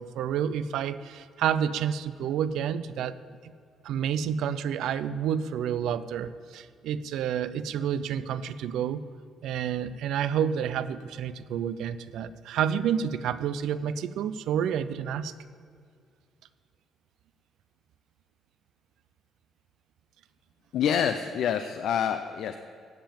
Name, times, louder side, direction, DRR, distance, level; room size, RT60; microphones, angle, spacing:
voice 1, 0.0-3.2 3.4-3.5 3.8-9.0 9.4-15.3, right 8 dB, 85° right, 13 dB, 0.5 m, -29 dB
voice 2, 20.7-22.6, left 8 dB, 75° left, 8 dB, 0.6 m, -27 dB
16.0 x 5.8 x 8.8 m, 2.2 s
cardioid pair, 90°, 0 cm